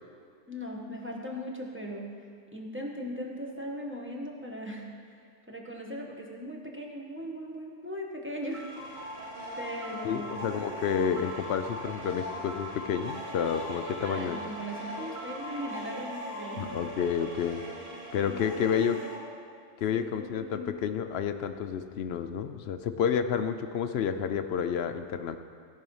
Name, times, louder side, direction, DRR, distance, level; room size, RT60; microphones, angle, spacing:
voice 1, 0.5-2.2 2.5-4.9 5.5-9.0 9.6-10.3 14.0-16.7 18.2-18.9 19.9-20.8, equal, 10° right, -1 dB, 1.1 m, -39 dB
sound 1, 8.5-19.2, equal, 40° right, 1.8 m, -40 dB
voice 2, 10.0-14.4 16.6-17.6 18.1-19.0 19.8-25.4, left 7 dB, 65° left, 9 dB, 0.7 m, -30 dB
16.5 x 5.7 x 5.5 m, 2.2 s
omnidirectional pair, 1.3 m